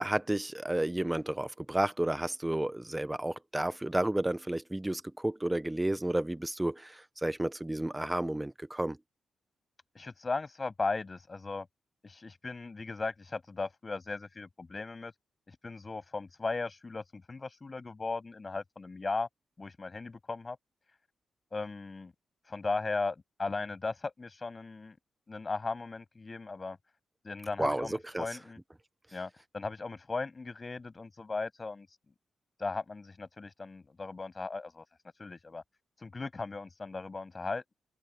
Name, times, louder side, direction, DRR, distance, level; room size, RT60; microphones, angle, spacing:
voice 1, 0.0-9.0 27.6-27.9 28.1-28.3, right 1 dB, 10° right, 0.7 m, -31 dB
voice 2, 9.9-11.7 12.0-15.1 15.5-19.3 19.6-20.6 21.5-22.1 22.4-25.0 25.3-26.8 27.2-28.6 29.1-32.0 32.6-34.8 35.2-35.6 36.0-37.7, left 3 dB, 30° left, 7.9 m, -37 dB
open air
wide cardioid pair, 120°, 0 cm